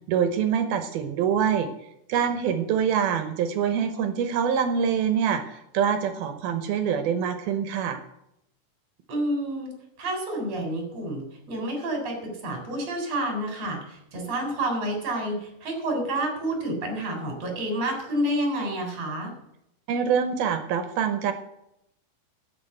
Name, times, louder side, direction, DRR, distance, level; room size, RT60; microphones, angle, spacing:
voice 1, 0.1-1.7 2.1-8.0 19.9-21.3, right 7 dB, 70° right, 8 dB, 2.7 m, -25 dB
voice 2, 9.1-19.4, right 1 dB, 40° right, 3 dB, 4.7 m, -29 dB
12.0 x 8.9 x 7.8 m, 0.80 s
omnidirectional pair, 4.9 m